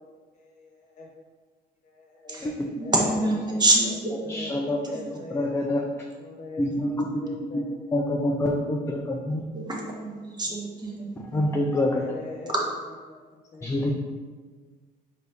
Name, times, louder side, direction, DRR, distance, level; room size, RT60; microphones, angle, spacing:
voice 1, 0.3-1.1 1.8-2.9 4.2-5.5 6.2-7.9 11.8-12.5 13.1-13.9, left 3 dB, 45° left, -1 dB, 1.0 m, -43 dB
voice 2, 2.8-4.5 4.8-5.1 9.5-11.6 12.5-12.6, right 2 dB, 25° right, -2 dB, 0.9 m, -27 dB
voice 3, 4.3-5.0 5.3-5.8 6.6-7.2 7.5-7.6 7.9-9.4 11.3-12.0 13.6-13.9, left 1 dB, 15° left, 0 dB, 0.3 m, -26 dB
4.5 x 2.7 x 3.3 m, 1.5 s
cardioid pair, 110°, 17 cm